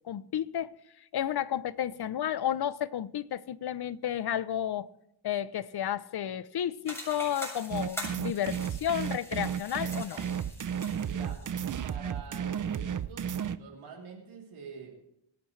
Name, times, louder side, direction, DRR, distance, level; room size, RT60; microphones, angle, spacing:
voice 1, 0.0-0.8 1.1-4.9 5.2-10.2, left 10 dB, 50° left, 0.7 m, -32 dB
sound 1, 6.8-11.5, equal, 5° left, 7.1 m, -43 dB
sound 2, 7.7-13.6, right 8 dB, 40° right, 0.6 m, -33 dB
voice 2, 11.0-11.4 11.8-14.9, right 5 dB, 75° right, 3.5 m, -46 dB
25.5 x 10.5 x 3.3 m
cardioid pair, 85°, 50 cm